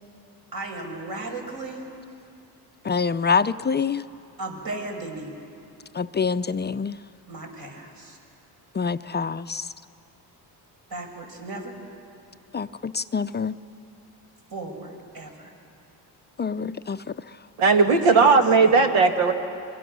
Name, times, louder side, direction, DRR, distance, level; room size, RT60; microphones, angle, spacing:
voice 1, 0.5-1.8 4.4-5.4 7.3-8.2 10.9-11.7 14.5-15.5 17.8-18.3 18.6-18.7, right 2 dB, 55° right, 1 dB, 5.5 m, -36 dB
voice 2, 2.8-4.0 5.9-7.0 8.7-9.7 12.5-13.5 16.4-17.1, left 5 dB, 25° left, 11 dB, 0.5 m, -26 dB
voice 3, 17.6-19.3, right 4 dB, 85° right, 5 dB, 2.0 m, -17 dB
27.0 x 23.5 x 6.2 m, 2.5 s
supercardioid pair, 75°, 45 cm